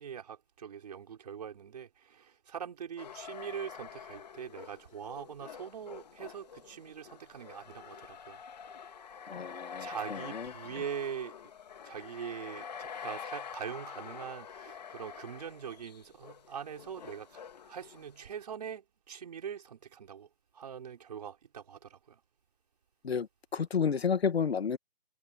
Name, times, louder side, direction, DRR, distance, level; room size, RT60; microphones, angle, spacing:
voice 1, 0.0-8.4 9.8-11.4 11.8-22.2, right 8 dB, 40° right, 4.6 m, -42 dB
sound 1, 3.0-18.3, left 7 dB, 45° left, 2.8 m, -47 dB
voice 2, 9.3-10.5 10.8-10.9 23.0-24.8, left 6 dB, 85° left, 1.8 m, -31 dB
hypercardioid pair, 175°, 30 cm